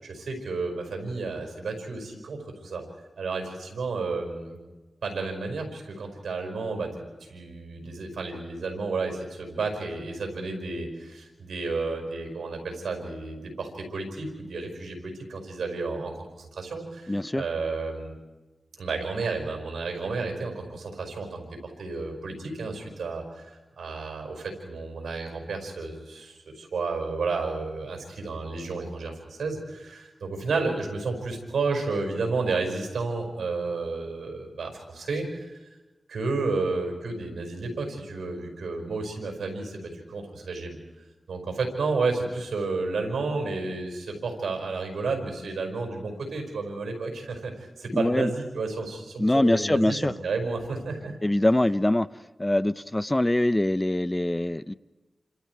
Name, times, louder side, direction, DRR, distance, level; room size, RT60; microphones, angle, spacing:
voice 1, 0.0-2.8 3.2-4.6 5.0-7.0 7.3-18.2 18.8-35.6 36.1-40.8 41.3-51.2, right 3 dB, 90° right, 4 dB, 5.2 m, -31 dB
voice 2, 17.1-17.4 47.9-48.3 49.2-50.1 51.2-52.1 52.4-54.7, left 1 dB, 20° left, 16 dB, 0.6 m, -23 dB
29.5 x 26.5 x 4.7 m, 1.2 s
cardioid pair, 45°, 0 cm